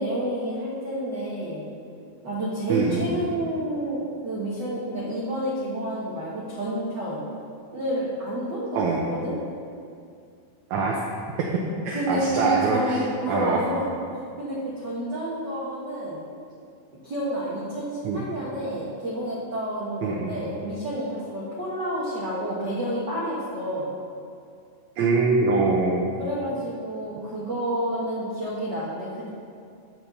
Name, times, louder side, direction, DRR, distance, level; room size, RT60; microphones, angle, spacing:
voice 1, 0.0-1.7 2.2-7.2 7.7-9.4 11.9-13.9 14.4-16.2 17.0-23.9 26.2-29.3, equal, 55° right, -7 dB, 1.2 m, -29 dB
voice 2, 2.7-3.1 8.8-9.1 10.7-11.0 11.4-11.5 11.8-13.6 18.0-18.3 20.0-20.3 25.0-26.1, right 4 dB, 75° right, -1 dB, 1.8 m, -24 dB
12.0 x 4.6 x 6.7 m, 2.4 s
omnidirectional pair, 4.1 m